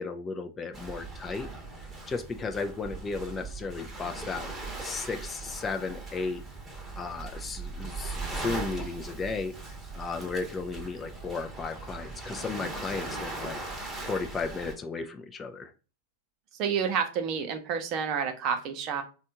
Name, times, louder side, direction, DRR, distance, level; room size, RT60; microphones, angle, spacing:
voice 1, 0.0-1.5 1.8-4.5 4.8-6.4 7.0-9.5 9.9-13.6 14.1-15.7, left 4 dB, 20° left, 6 dB, 0.4 m, -34 dB
Waves surf, 0.7-14.7, right 3 dB, 15° right, 0.9 m, -39 dB
voice 2, 16.6-19.0, right 7 dB, 40° right, 7 dB, 0.6 m, -29 dB
3.3 x 2.2 x 2.8 m, 0.34 s
figure-of-eight pair, 95°, 0 cm